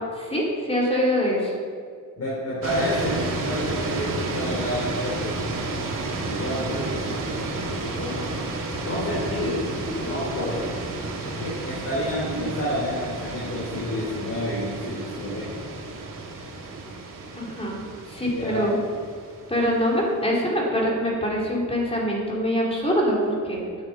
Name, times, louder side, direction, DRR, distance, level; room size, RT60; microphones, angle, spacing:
voice 1, 0.2-1.5 17.4-17.8 18.1-18.7 19.5-23.6, equal, 20° left, -4 dB, 3.4 m, -24 dB
voice 2, 2.2-5.4 6.2-8.3 8.8-10.7 11.2-15.7 18.3-18.8, left 1 dB, 50° left, -6 dB, 3.6 m, -29 dB
sound 1, 2.6-19.9, right 3 dB, 80° right, 2.0 m, -32 dB
9.6 x 9.5 x 8.6 m, 2.2 s
wide cardioid pair, 155°, 32 cm